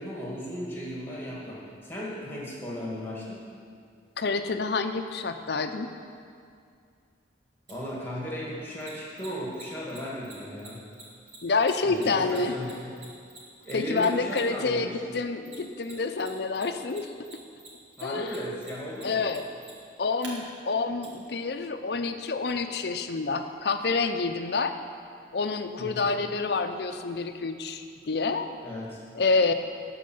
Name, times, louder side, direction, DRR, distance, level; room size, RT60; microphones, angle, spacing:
voice 1, 0.0-3.4 7.7-10.8 11.8-12.8 13.6-15.0 18.0-19.2 25.8-26.1 28.6-29.0, equal, 10° left, -4 dB, 1.9 m, -36 dB
voice 2, 4.2-5.9 11.4-12.5 13.7-17.3 18.0-18.3 19.0-19.5 20.0-24.8 25.3-28.5 29.1-29.5, left 4 dB, 60° left, 8 dB, 0.5 m, -28 dB
Mechanisms, 7.7-7.8 8.8-14.7 15.4-16.3 16.5-20.3 21.0-21.1, right 3 dB, 80° right, 2.2 m, -47 dB
12.0 x 4.7 x 7.7 m, 2.3 s
head